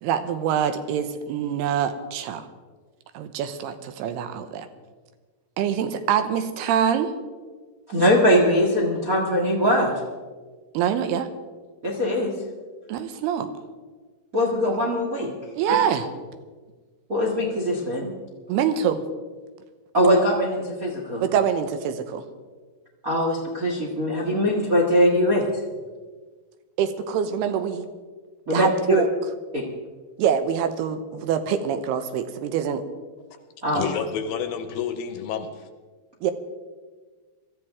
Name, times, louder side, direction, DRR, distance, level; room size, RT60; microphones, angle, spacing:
voice 1, 0.0-2.5 3.1-4.7 5.6-7.1 10.7-11.3 12.9-13.5 15.5-16.1 18.5-19.0 21.2-22.2 26.8-27.9 28.5-29.1 30.2-32.8 36.2-36.3, right 8 dB, 90° right, 9 dB, 2.9 m, -25 dB
voice 2, 7.9-9.9 11.8-12.3 14.3-15.3 17.1-18.1 19.9-21.2 23.0-25.5 28.5-29.0 29.5-29.6 33.6-33.8, equal, 55° right, -2 dB, 0.9 m, -21 dB
voice 3, 33.7-35.7, left 7 dB, 75° left, 8 dB, 2.4 m, -29 dB
23.0 x 14.0 x 3.6 m, 1.4 s
omnidirectional pair, 4.5 m